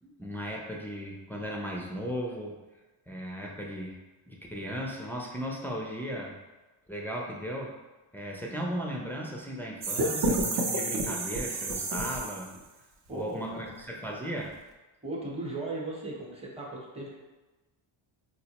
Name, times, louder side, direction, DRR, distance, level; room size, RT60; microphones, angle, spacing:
voice 1, 0.0-2.6 3.1-4.0 4.3-6.4 6.9-7.7 8.1-12.5 13.1-14.6, equal, 5° left, -2 dB, 0.4 m, -36 dB
sound 1, 9.8-12.6, right 2 dB, 50° right, 0.7 m, -30 dB
voice 2, 13.1-13.7 15.0-17.1, right 2 dB, 10° right, -3 dB, 0.9 m, -37 dB
4.2 x 2.0 x 2.8 m, 1.2 s
cardioid pair, 75°, 50 cm